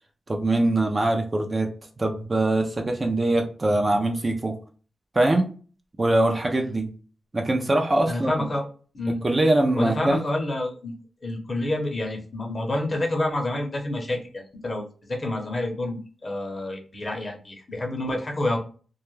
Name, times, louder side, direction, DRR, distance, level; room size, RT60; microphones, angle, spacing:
voice 1, 0.3-1.7 2.0-4.6 5.1-5.5 6.0-6.9 7.3-8.5 9.1-10.2, right 2 dB, 30° right, 2 dB, 0.4 m, -23 dB
voice 2, 8.1-8.6 8.9-9.2 9.7-10.9 11.2-18.6, left 1 dB, 35° left, 1 dB, 0.7 m, -28 dB
2.2 x 2.1 x 3.0 m, 0.39 s
wide cardioid pair, 105°, 0 cm